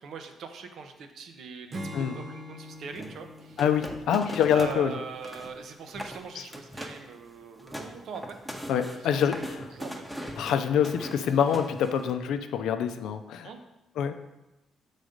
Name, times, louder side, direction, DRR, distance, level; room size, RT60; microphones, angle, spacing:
voice 1, 0.0-3.6 4.5-8.4 8.7-10.0 13.4-13.6, right 5 dB, 70° right, 6 dB, 0.7 m, -42 dB
Acoustic guitar / Strum, 1.7-5.2, left 1 dB, 40° right, 0.9 m, -43 dB
sound 1, 2.9-4.8 5.1-5.6 5.9-6.2 6.5-7.1 7.4-12.1, equal, ahead, 0.8 m, -40 dB
voice 2, 3.6-4.9 8.7-9.4 10.4-13.5 14.0-14.1, left 8 dB, 80° left, 8 dB, 0.5 m, -25 dB
6.3 x 4.1 x 5.1 m, 1.0 s
cardioid pair, 90°, 0 cm